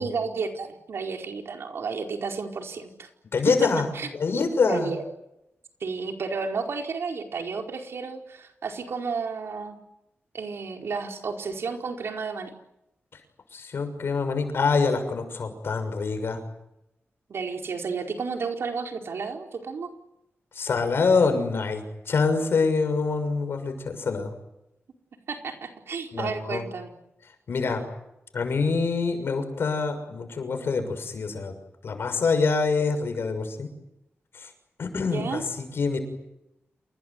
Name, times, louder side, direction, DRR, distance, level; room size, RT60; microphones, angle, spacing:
voice 1, 0.0-3.1 3.9-4.1 4.6-5.0 5.8-9.8 10.3-12.5 17.3-19.9 25.3-26.9 35.0-35.4, right 5 dB, 80° right, 3 dB, 4.7 m, -32 dB
voice 2, 3.3-4.9 13.5-16.4 20.5-24.3 26.1-26.6 27.5-27.8 28.3-31.5 31.8-33.7 34.3-34.5 34.8-36.0, left 4 dB, 70° left, 7 dB, 6.4 m, -25 dB
28.5 x 21.0 x 9.7 m, 0.86 s
wide cardioid pair, 150°, 4 cm